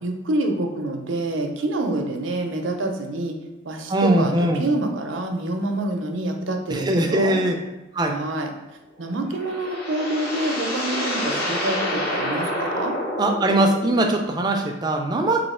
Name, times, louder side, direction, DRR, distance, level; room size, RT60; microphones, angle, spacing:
voice 1, 0.0-3.3 3.6-7.4 8.1-8.5 9.0-13.0, right 2 dB, 75° right, 4 dB, 0.5 m, -27 dB
voice 2, 3.9-4.6 6.7-7.5 7.9-8.2 13.2-15.5, right 1 dB, 20° right, 3 dB, 0.3 m, -21 dB
sound 1, 9.0-14.2, left 1 dB, 50° left, 0.9 m, -28 dB
3.1 x 2.7 x 4.2 m, 1.0 s
head